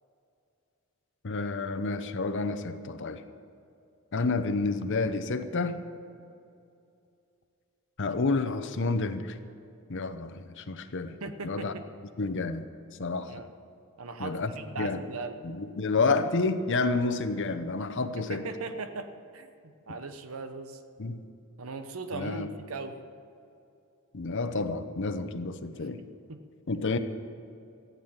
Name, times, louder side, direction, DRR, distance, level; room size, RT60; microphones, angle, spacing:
voice 1, 1.2-3.2 4.1-5.8 8.0-9.4 9.9-11.2 11.4-11.7 12.2-12.7 13.0-13.3 14.2-14.5 14.8-15.0 15.4-18.4 21.0-21.2 22.1-22.5 24.1-26.0 26.7-27.0, left 3 dB, 55° left, 9 dB, 0.8 m, -29 dB
voice 2, 11.2-11.8 13.3-13.5 14.0-15.4 18.2-19.5 19.9-20.8 21.6-23.1 25.7-26.4, right 3 dB, 65° right, 8 dB, 0.9 m, -39 dB
14.5 x 8.3 x 8.8 m, 2.5 s
head